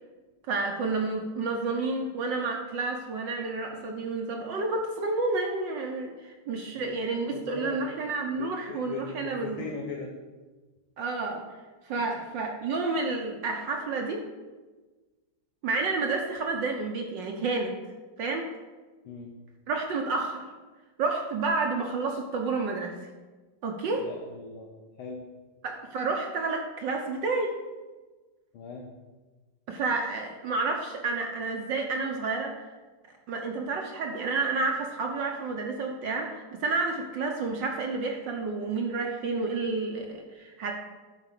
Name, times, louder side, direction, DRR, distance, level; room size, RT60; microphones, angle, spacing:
voice 1, 0.5-9.7 11.0-11.4 11.8-14.3 15.6-17.7 18.2-18.5 19.7-20.4 21.0-22.9 23.6-24.1 25.6-27.6 29.7-32.7 33.3-40.7, right 3 dB, 65° right, 2 dB, 1.5 m, -30 dB
voice 2, 7.3-7.9 8.4-10.2 11.9-12.0 19.1-19.3 24.0-24.7 25.0-25.3 28.5-28.9, left 4 dB, 75° left, 0 dB, 1.9 m, -39 dB
11.0 x 4.9 x 7.4 m, 1.3 s
omnidirectional pair, 2.3 m